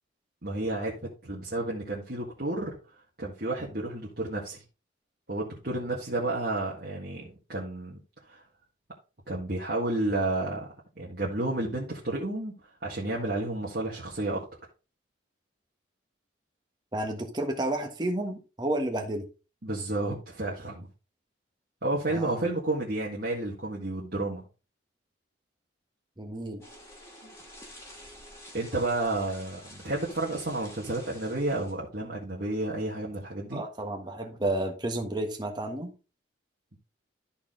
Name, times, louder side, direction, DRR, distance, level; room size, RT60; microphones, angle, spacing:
voice 1, 0.4-2.8 3.2-4.6 5.3-8.0 8.3-8.4 9.3-10.7 11.0-12.5 12.8-14.4 19.6-20.9 21.8-24.4 27.2-27.3 28.5-33.6, right 2 dB, 55° right, 1.9 m, -31 dB
voice 2, 16.9-19.2 22.1-22.4 26.2-26.6 33.5-35.9, right 1 dB, 20° right, 1.4 m, -31 dB
sound 1, 26.6-31.7, left 1 dB, 15° left, 2.1 m, -49 dB
13.0 x 4.4 x 3.8 m
head